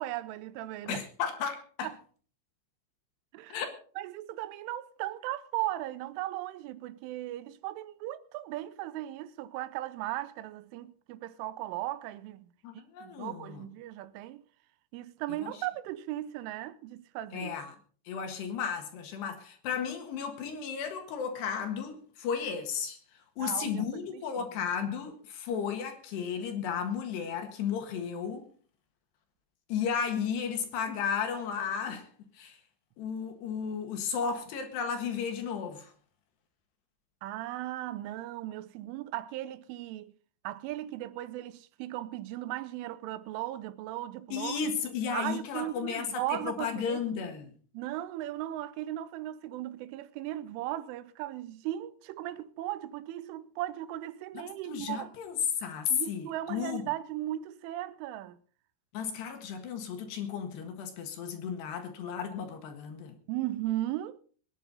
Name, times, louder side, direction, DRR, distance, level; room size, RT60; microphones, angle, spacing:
voice 1, 0.0-1.0 1.8-1.9 3.3-3.6 4.0-12.5 13.0-14.4 14.9-17.6 23.4-24.5 37.2-40.1 40.4-44.6 45.1-47.0 47.7-55.1 55.9-58.4 63.3-64.2, right 14 dB, 85° right, 3.2 m, -37 dB
voice 2, 0.9-1.9 3.5-3.7 12.6-13.6 15.3-15.5 17.3-17.8 18.1-23.0 23.4-28.4 29.7-32.1 32.4-32.6 33.0-35.9 44.3-47.5 54.4-56.8 58.9-63.2, left 7 dB, 65° left, 3.5 m, -34 dB
22.5 x 10.0 x 4.0 m
omnidirectional pair, 5.6 m